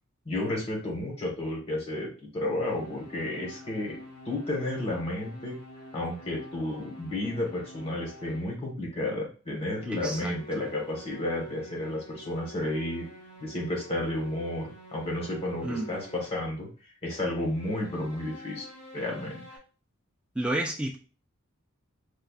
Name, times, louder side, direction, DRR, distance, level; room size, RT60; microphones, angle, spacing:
voice 1, 0.2-4.0 4.2-5.6 5.9-13.1 13.4-16.7 17.0-18.7 18.9-19.4, left 1 dB, 30° left, -2 dB, 1.3 m, -32 dB
sound 1, 2.6-8.5 9.5-16.5 17.3-19.6, equal, 75° left, 1.4 m, -47 dB
voice 2, 9.9-10.6 15.6-16.0 20.4-21.0, right 1 dB, 5° right, -1 dB, 0.3 m, -31 dB
5.0 x 2.3 x 2.4 m, 0.36 s
head